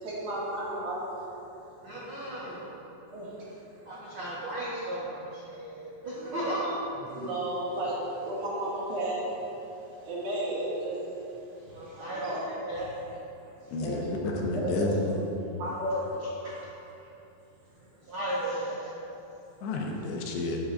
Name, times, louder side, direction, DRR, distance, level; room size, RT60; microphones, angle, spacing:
voice 1, 0.0-1.0 3.1-3.5 6.2-6.7 7.1-9.3 10.0-11.0 11.6-12.4 12.8-12.9 13.6-14.2 14.5-14.9 15.6-16.1, right 1 dB, 60° right, -8 dB, 3.7 m, -33 dB
voice 2, 1.8-2.8 3.8-7.3 11.7-12.9 15.9-16.0 16.4-16.7 17.0-17.1 18.0-19.0 19.9-20.0, right 1 dB, 80° right, -9 dB, 1.1 m, -36 dB
voice 3, 13.7-15.2 19.6-20.6, left 2 dB, 85° left, 0 dB, 3.2 m, -30 dB
13.5 x 8.7 x 2.6 m, 2.9 s
omnidirectional pair, 4.8 m